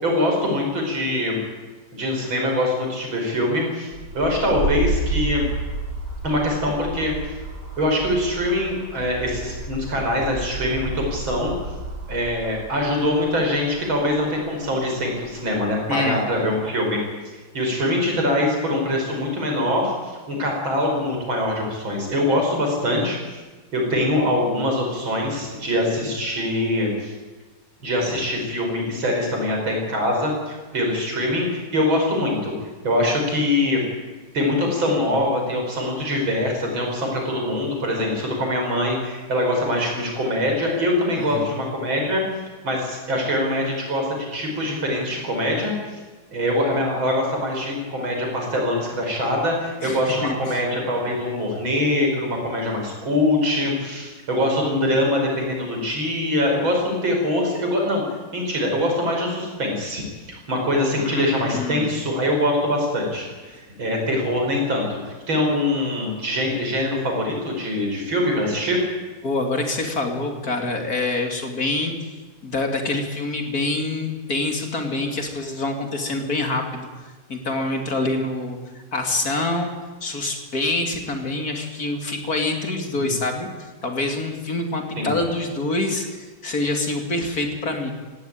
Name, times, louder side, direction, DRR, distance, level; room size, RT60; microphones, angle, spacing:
voice 1, 0.0-1.4 1.9-5.5 6.2-7.1 7.8-11.5 12.1-17.0 17.5-19.9 20.3-23.4 23.7-27.1 27.8-32.5 32.8-33.8 34.3-42.2 42.6-45.7 46.3-58.0 58.3-60.0 60.3-68.8 83.0-83.1 85.0-85.1, left 1 dB, 85° right, 1 dB, 6.1 m, -23 dB
sound 1, 3.9-15.8, right 2 dB, 55° right, 4.8 m, -31 dB
voice 2, 15.9-16.6 41.1-41.5 49.8-50.6 61.0-62.0 69.2-72.1 72.4-78.6 78.9-79.7 80.0-87.9, left 2 dB, 50° left, 4 dB, 3.1 m, -26 dB
17.5 x 17.5 x 9.3 m, 1.3 s
omnidirectional pair, 2.1 m